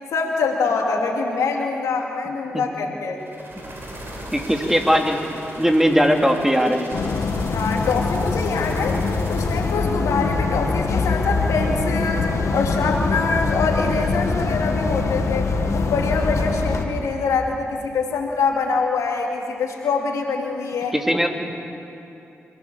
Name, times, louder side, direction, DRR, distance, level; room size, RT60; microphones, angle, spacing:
voice 1, 0.1-3.2 7.5-9.0 9.3-20.9, left 4 dB, 80° left, 1 dB, 2.8 m, -24 dB
sound 1, 3.2-10.0, right 1 dB, 45° right, 7.0 m, -39 dB
voice 2, 4.3-5.3 5.6-6.9 20.9-21.3, equal, 5° right, 3 dB, 2.8 m, -19 dB
sound 2, 6.9-16.8, left 3 dB, 65° left, 1.8 m, -23 dB
27.0 x 17.5 x 7.1 m, 2.9 s
supercardioid pair, 45°, 5 cm